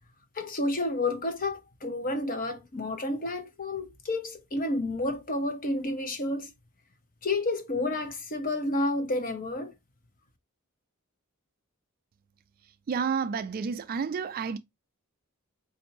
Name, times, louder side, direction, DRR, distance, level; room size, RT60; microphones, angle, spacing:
voice 1, 0.3-6.5 7.2-9.7, left 2 dB, 40° left, 0.8 m, -30 dB
voice 2, 12.9-14.6, right 6 dB, 40° right, 0.3 m, -30 dB
4.2 x 2.6 x 2.9 m
head